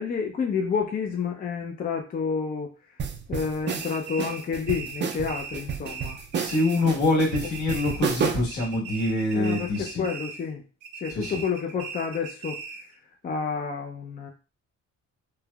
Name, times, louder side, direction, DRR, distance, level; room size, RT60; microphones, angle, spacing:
voice 1, 0.0-3.0 3.3-6.2 7.4-7.5 9.3-10.6 11.0-12.6 13.2-14.3, left 6 dB, 30° left, 2 dB, 0.4 m, -29 dB
sound 1, 3.0-8.6, right 6 dB, 40° right, 0.4 m, -31 dB
sound 2, 3.7-7.0 7.3-8.2 8.5-10.5 10.8-12.9, right 5 dB, 85° right, 0.8 m, -39 dB
voice 2, 6.3-10.1 11.1-11.4, left 2 dB, 70° left, -4 dB, 1.5 m, -25 dB
3.2 x 2.0 x 2.3 m, 0.33 s
cardioid pair, 90°, 30 cm